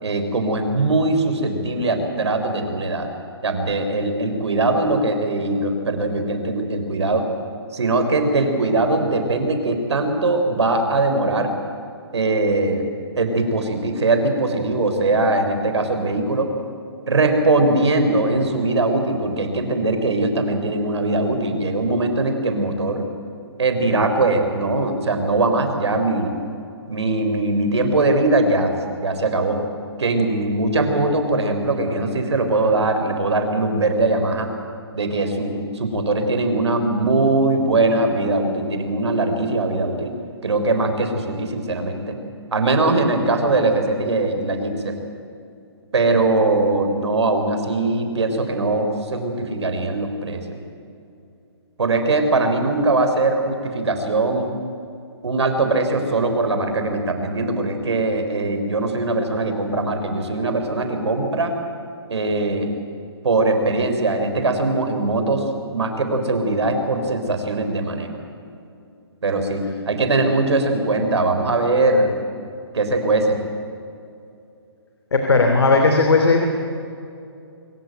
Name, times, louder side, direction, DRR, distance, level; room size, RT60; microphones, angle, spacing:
voice 1, 0.0-3.1 3.4-7.3 7.7-11.5 12.1-12.9 13.2-16.5 17.1-23.1 23.6-26.3 26.9-29.6 30.0-34.5 34.9-40.1 40.4-42.2 42.5-45.0 45.9-50.6 51.8-54.5 55.2-61.6 62.1-62.7 63.2-65.5 65.7-68.1 69.2-72.1 72.7-73.4, right 2 dB, 85° right, 6 dB, 4.0 m, -21 dB
voice 2, 75.1-76.4, left 3 dB, 70° left, 3 dB, 2.9 m, -16 dB
24.0 x 15.5 x 9.1 m, 2.6 s
hypercardioid pair, 175°, 14 cm